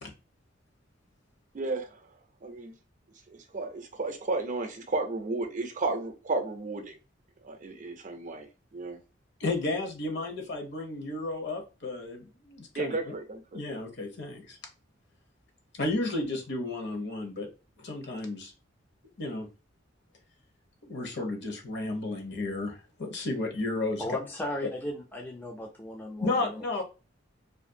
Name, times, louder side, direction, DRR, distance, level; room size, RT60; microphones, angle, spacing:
voice 1, 1.5-1.9 2.4-2.7 3.3-6.9 7.4-9.0 12.8-13.6, right 3 dB, 40° right, 0.5 m, -33 dB
voice 2, 9.4-13.1 13.5-14.6 15.7-17.5 17.8-18.5 19.2-19.5 20.8-24.0 26.2-26.8, left 2 dB, 65° left, 0.9 m, -33 dB
voice 3, 24.0-26.6, left 1 dB, 10° left, 0.4 m, -36 dB
2.6 x 2.5 x 2.6 m
head